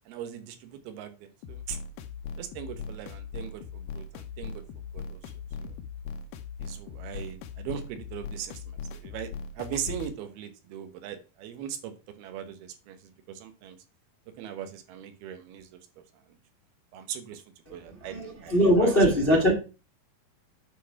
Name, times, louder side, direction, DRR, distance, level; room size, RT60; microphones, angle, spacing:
voice 1, 0.1-1.8 2.4-4.6 4.9-5.2 5.6-5.8 6.6-9.3 9.6-13.0 13.3-13.8 14.4-15.8 16.9-17.4 17.7-19.0, right 9 dB, 85° right, 3.0 m, -39 dB
sound 1, 1.4-10.2, left 5 dB, 75° left, 2.3 m, -39 dB
voice 2, 18.1-19.5, equal, 30° left, 0.9 m, -21 dB
9.2 x 4.1 x 5.7 m
omnidirectional pair, 4.3 m